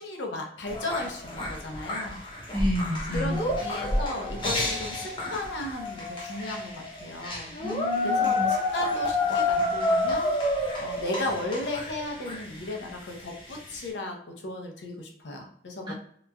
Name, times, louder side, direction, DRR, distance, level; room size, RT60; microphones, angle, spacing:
voice 1, 0.0-2.2 3.1-7.5 8.0-10.3 10.8-15.9, left 2 dB, 85° left, 2 dB, 0.6 m, -35 dB
sound 1, 0.6-13.9, left 2 dB, 30° left, 0.6 m, -29 dB
voice 2, 2.5-3.5 7.6-8.6 15.9-16.0, left 1 dB, 25° right, -4 dB, 0.7 m, -30 dB
3.0 x 2.3 x 2.2 m, 0.63 s
head